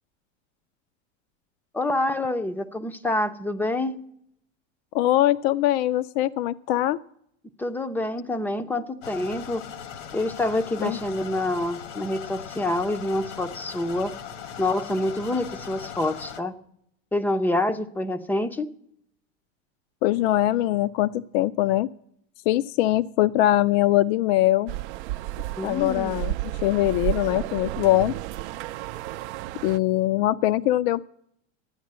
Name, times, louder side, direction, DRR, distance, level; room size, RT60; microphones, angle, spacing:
voice 1, 1.7-4.0 7.6-9.6 10.1-14.1 14.6-16.5 17.1-18.7 25.6-26.2, left 1 dB, 5° left, 9 dB, 0.4 m, -27 dB
voice 2, 4.9-7.0 10.8-11.0 20.0-21.9 22.5-24.7 25.6-26.3 26.6-28.1 29.6-31.1, left 14 dB, 60° left, 13 dB, 0.5 m, -22 dB
sound 1, 9.0-16.4, left 8 dB, 80° left, 1.3 m, -39 dB
sound 2, 24.7-29.8, right 15 dB, 65° right, 0.5 m, -32 dB
11.5 x 9.4 x 7.4 m, 0.72 s
supercardioid pair, 140°, 36 cm